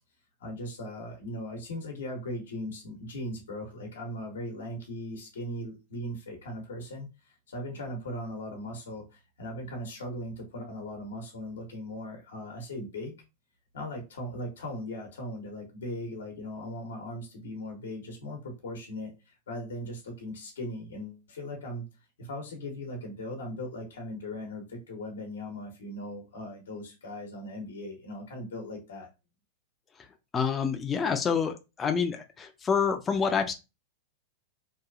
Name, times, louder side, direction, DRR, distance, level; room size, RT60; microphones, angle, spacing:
voice 1, 0.4-13.1 13.7-21.8 22.2-29.1, left 1 dB, 90° left, 2 dB, 0.9 m, -39 dB
voice 2, 30.3-33.5, left 6 dB, 20° left, 5 dB, 0.4 m, -27 dB
2.8 x 2.3 x 2.3 m, 0.26 s
hypercardioid pair, 130°, 0 cm